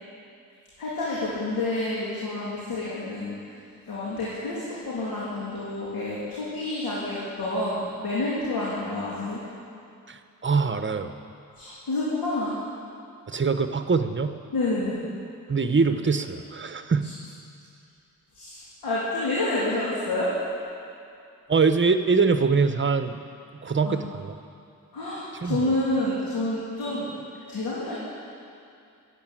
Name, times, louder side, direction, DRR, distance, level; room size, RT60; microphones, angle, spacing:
voice 1, 0.8-3.4 3.9-9.4 11.6-12.6 14.5-15.0 18.3-20.3 23.8-24.0 24.9-27.1 27.5-28.0, left 2 dB, 85° left, -8 dB, 3.1 m, -28 dB
voice 2, 10.1-11.1 13.3-14.4 15.5-17.1 21.5-23.2 23.6-24.3 25.4-25.7, right 4 dB, 35° right, 9 dB, 1.0 m, -23 dB
13.0 x 9.2 x 9.0 m, 2.5 s
cardioid pair, 65°, 34 cm